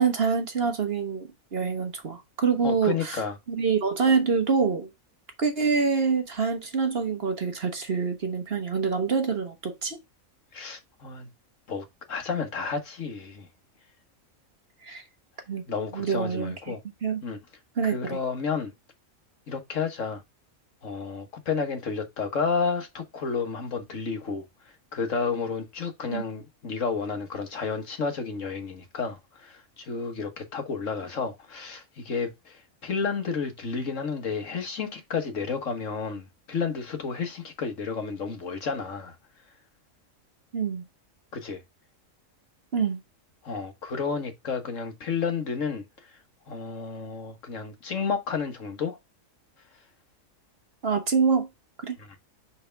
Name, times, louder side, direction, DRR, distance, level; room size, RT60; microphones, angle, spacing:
voice 1, 0.0-3.2 3.5-4.9 5.4-10.0 14.8-15.0 15.5-15.6 15.9-16.8 17.0-17.2 17.8-18.2 26.1-26.2 40.5-40.8 42.7-43.0 50.8-51.5 51.8-52.0, right 5 dB, 50° right, 1.4 m, -26 dB
voice 2, 2.6-3.4 10.5-11.3 11.7-13.5 15.7-16.8 17.2-17.4 17.8-18.7 19.5-20.2 20.8-24.5 24.9-39.2 41.3-41.6 43.4-45.8 46.5-49.0 52.0-52.1, left 5 dB, 65° left, 1.7 m, -31 dB
5.8 x 5.7 x 3.4 m
omnidirectional pair, 1.4 m